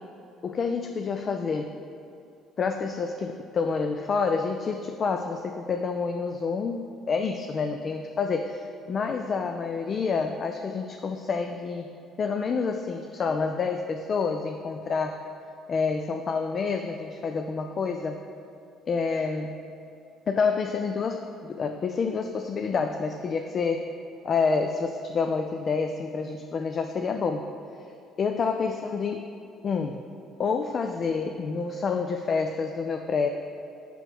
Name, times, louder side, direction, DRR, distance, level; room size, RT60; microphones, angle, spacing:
voice 1, 0.4-1.7 2.6-11.9 12.2-15.2 15.7-18.2 18.9-19.6 20.3-23.9 24.2-27.5 28.2-29.3 29.6-30.0 30.4-33.3, left 5 dB, 45° left, 5 dB, 0.4 m, -28 dB
6.0 x 5.3 x 4.6 m, 2.6 s
supercardioid pair, 75°, 0 cm